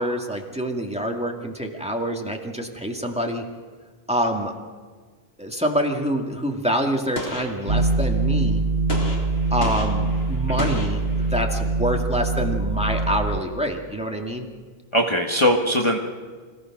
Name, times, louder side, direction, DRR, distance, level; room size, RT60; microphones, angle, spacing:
voice 1, 0.0-3.4 4.1-4.5 5.4-8.6 9.5-14.5, equal, 5° right, 1 dB, 2.2 m, -26 dB
Gunshot gunfire, 7.2-8.2 8.9-11.7, left 1 dB, 75° left, 3.0 m, -34 dB
sound 1, 7.7-13.4, right 3 dB, 60° right, 1.9 m, -23 dB
voice 2, 14.9-16.0, equal, 30° left, 0 dB, 1.6 m, -21 dB
26.5 x 17.0 x 6.1 m, 1.5 s
omnidirectional pair, 1.0 m